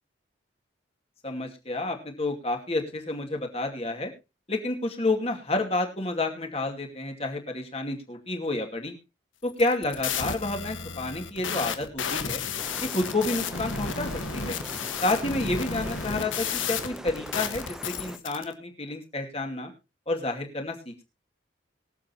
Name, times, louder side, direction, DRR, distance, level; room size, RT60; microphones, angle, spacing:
voice 1, 1.2-4.1 4.5-8.9 9.4-12.4 12.8-14.6 15.0-19.7 20.1-20.9, left 2 dB, 30° left, 3 dB, 2.5 m, -30 dB
sound 1, 9.5-18.4, left 6 dB, 90° left, 1.6 m, -32 dB
sound 2, 12.6-18.2, equal, 5° right, 0.8 m, -41 dB
23.0 x 7.8 x 2.9 m, 0.27 s
head